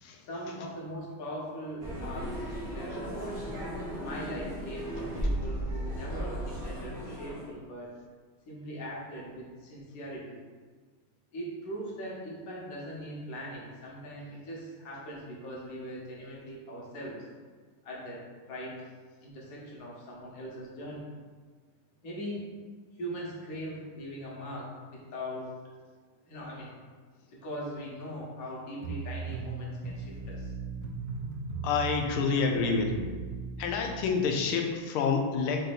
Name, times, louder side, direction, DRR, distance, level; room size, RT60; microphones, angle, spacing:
voice 1, 0.3-3.5 4.0-7.9 8.5-10.4 11.3-17.3 17.8-18.8 19.2-21.0 22.0-22.4 22.9-25.5 26.3-26.7 27.3-30.5, equal, 50° left, -5 dB, 1.3 m, -40 dB
sound 1, 1.8-7.5, right 1 dB, 40° right, 0.8 m, -35 dB
sound 2, 28.8-34.1, right 4 dB, 70° right, 1.2 m, -37 dB
voice 2, 31.6-33.0 33.6-35.6, left 5 dB, 85° left, 3 dB, 1.5 m, -28 dB
4.7 x 2.7 x 4.0 m, 1.5 s
omnidirectional pair, 2.3 m